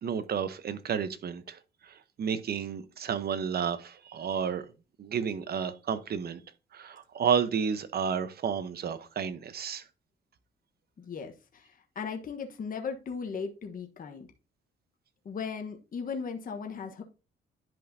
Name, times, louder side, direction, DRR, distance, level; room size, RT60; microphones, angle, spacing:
voice 1, 0.0-4.7 5.0-6.4 6.7-9.8, right 7 dB, 55° right, 0.9 m, -31 dB
voice 2, 11.0-14.3 15.2-17.0, left 5 dB, 45° left, 1.2 m, -37 dB
10.5 x 5.3 x 2.7 m
cardioid pair, 90°, 20 cm